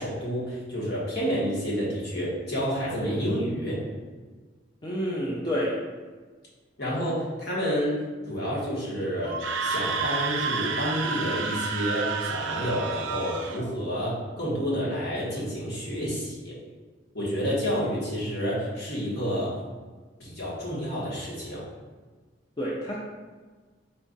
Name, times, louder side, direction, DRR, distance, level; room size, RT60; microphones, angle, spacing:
voice 1, 0.0-3.8 6.8-8.0 8.3-16.5 17.1-19.5 20.2-21.6, equal, 60° left, -7 dB, 1.5 m, -29 dB
voice 2, 4.8-5.8 22.6-22.9, equal, 25° left, -5 dB, 0.5 m, -28 dB
Screaming, 9.3-13.6, right 5 dB, 90° right, 0.4 m, -30 dB
4.4 x 2.4 x 3.9 m, 1.4 s
head